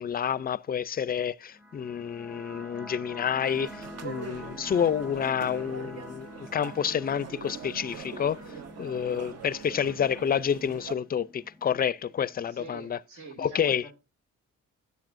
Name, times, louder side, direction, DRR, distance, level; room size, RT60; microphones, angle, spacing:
voice 1, 0.0-13.0 13.4-13.9, left 8 dB, 30° left, 0.4 m, -29 dB
sound 1, 1.5-12.5, left 1 dB, 5° right, 0.8 m, -46 dB
sound 2, 3.4-11.0, right 8 dB, 55° right, 0.8 m, -43 dB
voice 2, 12.5-13.9, right 3 dB, 80° right, 2.4 m, -45 dB
10.5 x 8.5 x 2.6 m
cardioid pair, 90°, 30 cm